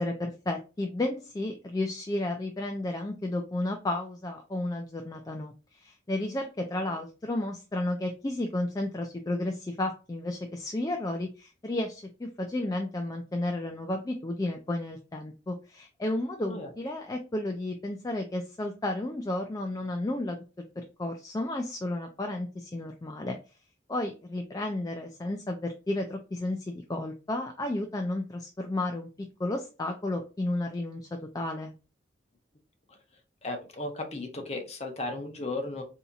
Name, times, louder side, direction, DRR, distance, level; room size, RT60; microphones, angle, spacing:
voice 1, 0.0-20.4 20.8-23.4 23.9-29.1 29.4-31.7, left 1 dB, 20° left, 3 dB, 0.3 m, -32 dB
voice 2, 33.4-35.8, left 2 dB, 35° left, 3 dB, 0.8 m, -35 dB
4.0 x 2.8 x 2.4 m, 0.32 s
head